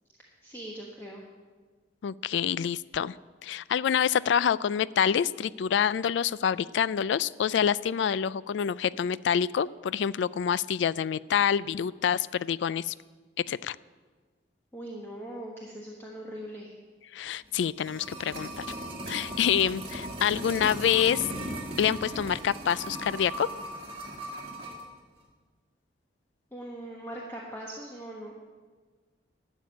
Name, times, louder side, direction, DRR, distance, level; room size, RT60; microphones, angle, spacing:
voice 1, 0.4-1.2 14.7-16.8 26.5-28.3, right 1 dB, 10° left, -3 dB, 1.3 m, -41 dB
voice 2, 2.0-3.1 3.4-12.9 13.5-13.8 17.1-18.6 19.1-21.2 21.8-23.5, left 8 dB, 75° left, 19 dB, 0.3 m, -27 dB
sound 1, 17.5-24.9 25.2-25.3, right 1 dB, 30° right, 2.0 m, -38 dB
12.5 x 7.2 x 9.5 m, 1.4 s
head